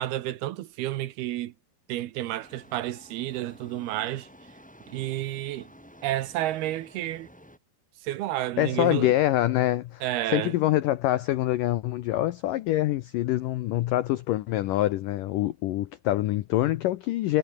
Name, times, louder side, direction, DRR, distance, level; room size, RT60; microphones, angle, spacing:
voice 1, 0.0-1.5 1.9-4.3 4.9-5.7 6.0-7.3 8.0-9.1 10.0-10.5, right 14 dB, 75° right, 2.8 m, -30 dB
sound 1, 2.4-7.6, equal, ahead, 6.3 m, -51 dB
voice 2, 8.6-10.0 10.3-17.4, left 15 dB, 85° left, 1.9 m, -25 dB
omnidirectional pair, 5.0 m